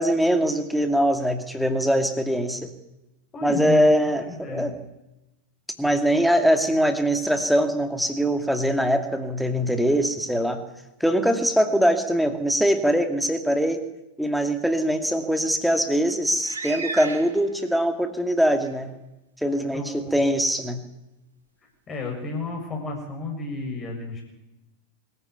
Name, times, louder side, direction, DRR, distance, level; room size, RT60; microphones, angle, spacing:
voice 1, 0.0-2.7 3.4-4.7 5.8-10.6 11.0-13.8 14.2-18.9 19.4-20.8, equal, ahead, 7 dB, 2.5 m, -22 dB
voice 2, 3.3-4.7 19.7-20.2 21.9-24.2, left 3 dB, 25° left, 1 dB, 6.7 m, -32 dB
sound 1, 16.3-17.7 18.6-18.7 19.4-19.5, right 3 dB, 75° right, 3.7 m, -34 dB
24.5 x 15.0 x 9.7 m, 0.94 s
figure-of-eight pair, 90°, 0 cm